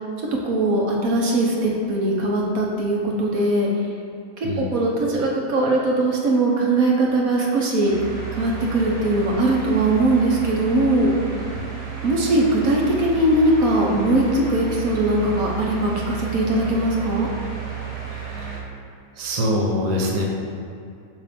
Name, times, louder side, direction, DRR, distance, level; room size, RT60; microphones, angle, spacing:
voice 1, 0.4-3.7 4.6-7.9 8.3-11.1 12.0-17.3, right 1 dB, 60° right, -2 dB, 1.4 m, -20 dB
sound 1, 7.8-18.6, right 8 dB, 75° right, 1.8 m, -32 dB
voice 2, 19.2-20.2, left 1 dB, 30° right, -2 dB, 0.8 m, -23 dB
7.2 x 3.3 x 5.9 m, 2.5 s
omnidirectional pair, 1.7 m